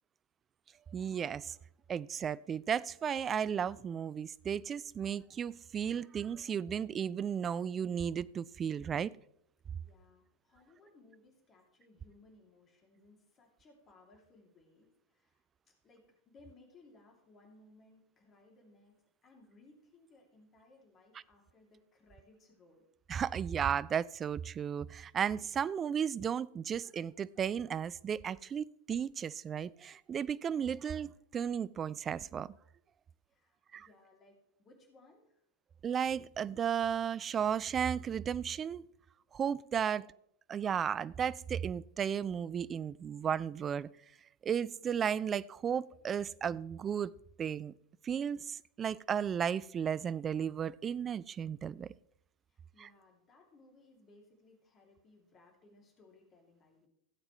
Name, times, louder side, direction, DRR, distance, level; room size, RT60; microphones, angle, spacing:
voice 1, 0.9-1.6 1.9-9.1 23.1-32.5 33.7-33.9 35.8-38.9 39.3-40.0 40.5-43.9 44.4-47.7 48.0-51.9 52.8-52.9, right 8 dB, 25° right, 0.3 m, -34 dB
voice 2, 9.8-15.5 15.8-22.8 33.3-35.4 39.8-40.1 52.5-56.9, left 2 dB, 25° left, 2.7 m, -63 dB
16.5 x 7.9 x 3.2 m
figure-of-eight pair, 90°, 0 cm